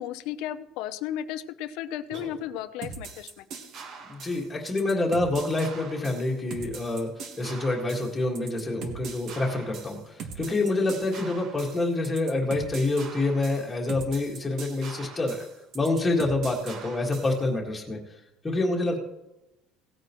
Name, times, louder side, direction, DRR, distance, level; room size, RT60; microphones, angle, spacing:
voice 1, 0.0-3.4, left 11 dB, 65° left, 11 dB, 0.7 m, -34 dB
sound 1, 2.1-3.0, right 2 dB, 60° right, 4.3 m, -45 dB
sound 2, 2.8-17.4, right 5 dB, 40° right, 1.3 m, -41 dB
voice 2, 4.0-15.4 15.7-18.2 18.4-19.0, left 2 dB, 10° left, -1 dB, 1.9 m, -27 dB
18.0 x 9.0 x 3.1 m, 0.94 s
cardioid pair, 170°, 0 cm